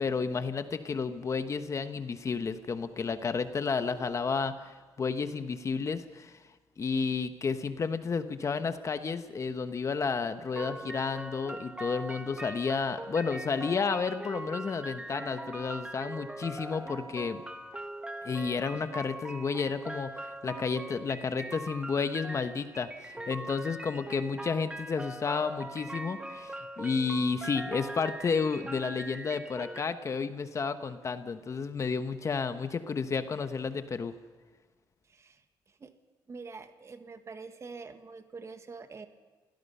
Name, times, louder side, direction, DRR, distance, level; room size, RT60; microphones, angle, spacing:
voice 1, 0.0-6.4 6.8-17.4 18.2-34.1, left 5 dB, 40° left, 10 dB, 1.1 m, -31 dB
sound 1, 10.5-29.8, right 1 dB, 10° right, 1.8 m, -41 dB
voice 2, 35.1-35.9 36.3-39.1, right 4 dB, 35° right, 8 dB, 1.6 m, -46 dB
28.0 x 17.0 x 5.6 m, 1.4 s
cardioid pair, 90°, 8 cm